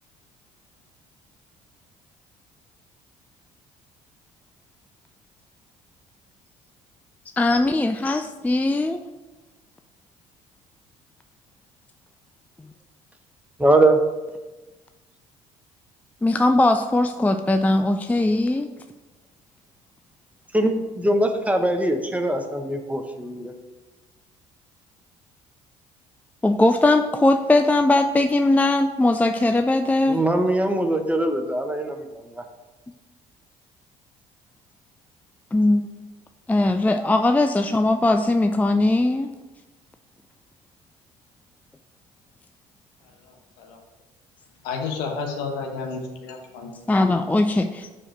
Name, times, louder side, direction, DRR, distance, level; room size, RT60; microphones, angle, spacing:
voice 1, 7.3-9.0 16.2-18.7 26.4-30.2 35.5-36.1 36.5-39.3 46.9-48.0, left 2 dB, 10° left, 7 dB, 0.4 m, -20 dB
voice 2, 13.6-14.0 20.5-23.5 30.1-32.4, right 1 dB, 10° right, 5 dB, 1.0 m, -22 dB
voice 3, 43.0-43.8 44.6-46.7, left 4 dB, 75° left, 3 dB, 1.1 m, -32 dB
4.9 x 4.9 x 5.7 m, 1.2 s
hypercardioid pair, 60°, 17 cm